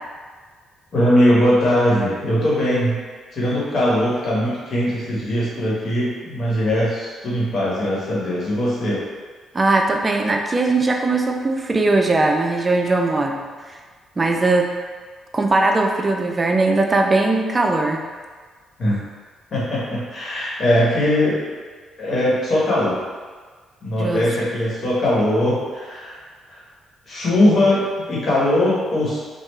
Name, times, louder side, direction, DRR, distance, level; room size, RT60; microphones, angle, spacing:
voice 1, 0.9-3.0 3.3-9.0 18.8-19.0 19.5-21.4 22.0-23.0 23.8-26.2 26.5-26.6 27.1-29.2, left 1 dB, 50° left, -7 dB, 1.3 m, -20 dB
voice 2, 9.5-13.8 14.2-14.7 15.3-18.0 24.0-24.3, right 2 dB, 25° right, 2 dB, 0.4 m, -19 dB
3.3 x 2.3 x 3.2 m, 1.5 s
cardioid pair, 90°, 0 cm